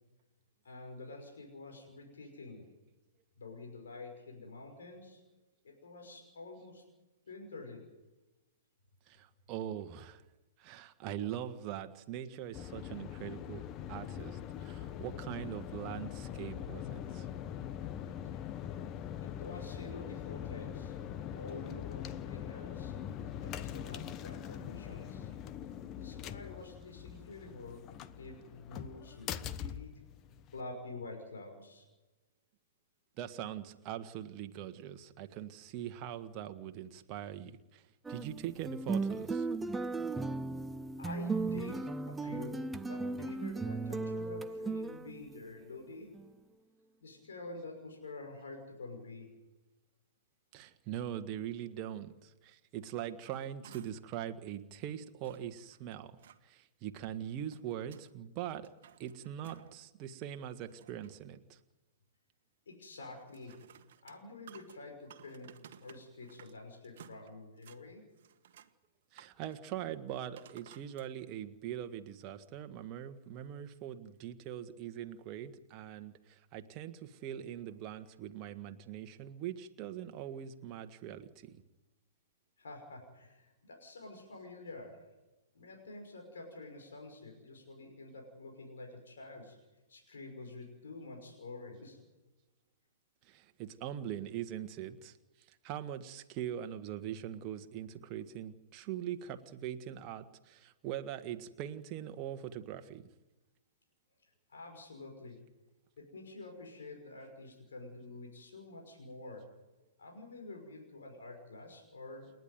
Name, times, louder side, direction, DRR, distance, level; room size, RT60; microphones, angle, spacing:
voice 1, 0.6-2.7 3.4-5.2 5.6-6.8 7.3-7.9 19.2-20.9 21.3-22.9 23.4-25.3 26.0-30.0 30.5-31.8 41.0-46.1 47.0-49.3 62.7-63.6 64.0-68.0 82.6-85.0 85.5-89.6 89.9-92.0 104.5-105.4 106.0-109.5 110.0-112.3, left 3 dB, 65° left, 2 dB, 5.9 m, -48 dB
voice 2, 9.1-10.2 10.6-17.3 33.2-37.8 38.1-39.5 50.5-56.1 56.4-58.7 59.0-61.6 69.1-81.6 93.2-95.2 95.6-103.1, right 10 dB, 35° right, 8 dB, 1.6 m, -42 dB
sound 1, 12.5-30.6, left 10 dB, 30° left, 0.9 m, -42 dB
sound 2, 38.0-45.5 46.1-46.3, right 3 dB, 10° right, 0.7 m, -36 dB
sound 3, 53.2-54.2 54.5-54.6 55.2-56.4 57.2-58.1 58.5-59.9 60.2-61.2 63.2-66.6 66.8-67.8 68.2-68.7 69.1-69.6 70.4-71.1 71.7-71.8, right 9 dB, 50° right, 1.5 m, -57 dB
29.0 x 11.0 x 9.5 m, 1.1 s
figure-of-eight pair, 115°, 0 cm